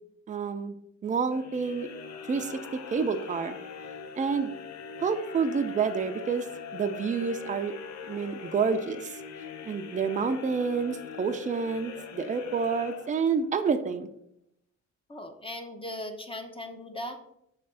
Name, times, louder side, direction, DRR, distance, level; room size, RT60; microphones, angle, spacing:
voice 1, 0.3-0.8 1.0-1.9 2.3-3.6 4.2-4.5 5.0-6.5 6.7-7.7 8.1-9.2 9.6-14.1, right 5 dB, 25° right, 7 dB, 0.5 m, -28 dB
sound 1, 1.3-13.6, left 6 dB, 65° left, 0.8 m, -42 dB
voice 2, 15.1-17.2, left 1 dB, 20° left, 5 dB, 0.7 m, -38 dB
5.8 x 3.3 x 5.5 m, 0.78 s
cardioid pair, 90°, 30 cm